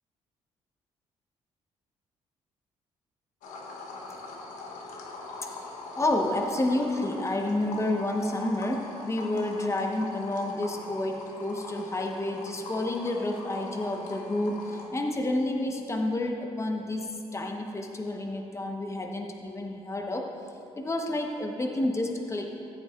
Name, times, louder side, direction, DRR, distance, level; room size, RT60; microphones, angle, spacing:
sound 1, 3.4-14.9, left 3 dB, 85° left, 1.1 m, -42 dB
voice 1, 5.9-20.3 20.8-22.5, left 1 dB, 20° left, 2 dB, 1.1 m, -30 dB
14.5 x 7.9 x 2.5 m, 2.6 s
supercardioid pair, 55°, 13 cm